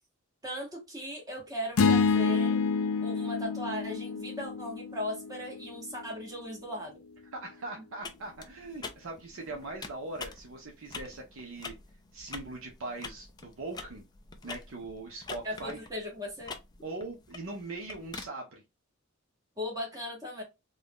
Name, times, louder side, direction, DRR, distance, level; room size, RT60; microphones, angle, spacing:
voice 1, 0.4-2.6 3.0-7.0 15.4-16.5 19.6-20.4, left 1 dB, 15° right, 1.2 m, -38 dB
sound 1, 1.8-6.0, left 5 dB, 85° left, 0.4 m, -28 dB
voice 2, 7.3-11.7 12.1-14.0 14.4-15.8 16.8-18.6, right 2 dB, 70° right, 0.6 m, -41 dB
sound 2, 8.0-18.3, left 4 dB, 20° left, 0.3 m, -46 dB
2.6 x 2.3 x 3.4 m
head